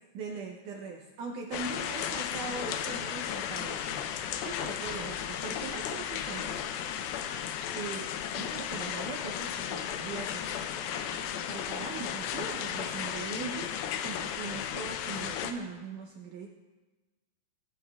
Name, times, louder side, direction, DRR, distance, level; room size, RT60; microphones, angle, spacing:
voice 1, 0.1-4.2 4.4-6.9 7.2-7.5 7.7-10.9 11.3-13.8 14.0-16.5, right 5 dB, 75° right, 1 dB, 1.9 m, -41 dB
sound 1, 1.5-15.5, left 9 dB, 80° left, 2.4 m, -35 dB
17.5 x 9.3 x 2.3 m, 1.2 s
omnidirectional pair, 4.3 m